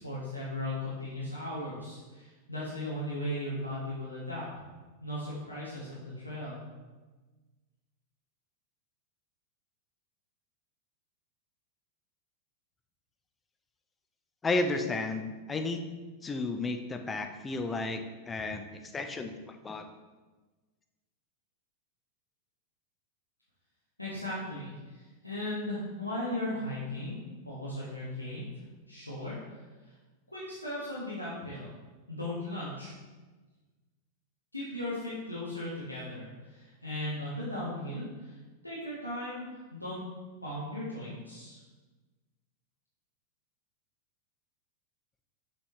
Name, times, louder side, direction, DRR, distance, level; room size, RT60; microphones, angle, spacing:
voice 1, 0.0-4.7 5.0-6.5 24.0-27.2 27.4-28.4 28.9-29.3 30.3-31.7 32.1-32.9 34.5-38.3 38.6-40.0 40.4-41.6, left 1 dB, 85° left, -8 dB, 1.3 m, -37 dB
voice 2, 14.4-15.9 16.2-19.8, left 3 dB, 15° left, 6 dB, 0.5 m, -33 dB
6.5 x 5.2 x 3.1 m, 1.3 s
figure-of-eight pair, 90°, 0 cm